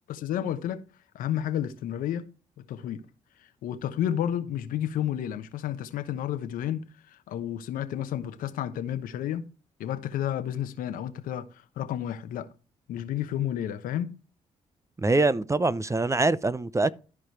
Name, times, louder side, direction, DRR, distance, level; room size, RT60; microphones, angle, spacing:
voice 1, 0.1-0.8 1.1-2.3 2.7-3.0 3.6-9.4 9.8-12.5 12.9-14.1, left 10 dB, 80° left, 1.0 m, -31 dB
voice 2, 15.0-16.9, right 2 dB, 20° right, 0.7 m, -24 dB
13.0 x 4.9 x 4.7 m
supercardioid pair, 50°, 14 cm